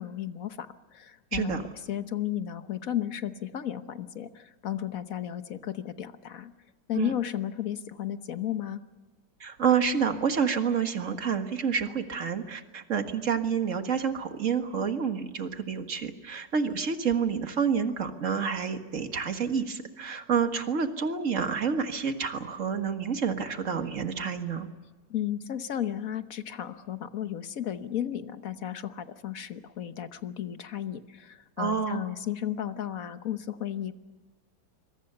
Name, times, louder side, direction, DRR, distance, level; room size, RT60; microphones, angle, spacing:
voice 1, 0.0-6.5 6.9-8.8 25.1-33.9, left 11 dB, 55° left, 11 dB, 1.4 m, -34 dB
voice 2, 1.3-1.6 6.9-7.1 9.4-24.7 31.6-32.0, right 6 dB, 45° right, 7 dB, 1.9 m, -28 dB
26.0 x 23.0 x 6.9 m, 1.3 s
omnidirectional pair, 1.9 m